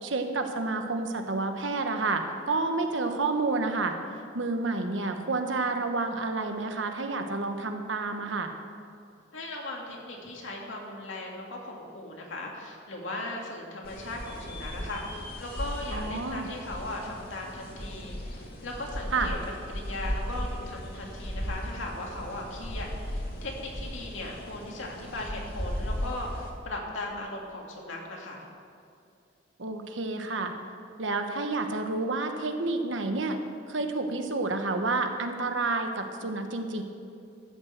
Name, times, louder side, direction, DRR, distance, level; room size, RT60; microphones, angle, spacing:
voice 1, 0.0-4.0 4.3-8.5 15.9-16.5 19.1-19.3 29.6-30.5 31.0-33.4 33.7-36.8, right 3 dB, 80° right, 5 dB, 1.1 m, -29 dB
voice 2, 9.3-19.4 19.7-28.4, left 2 dB, 85° left, -1 dB, 2.4 m, -38 dB
sound 1, 13.8-26.5, equal, 55° left, 2.2 m, -36 dB
13.5 x 6.6 x 7.8 m, 2.5 s
head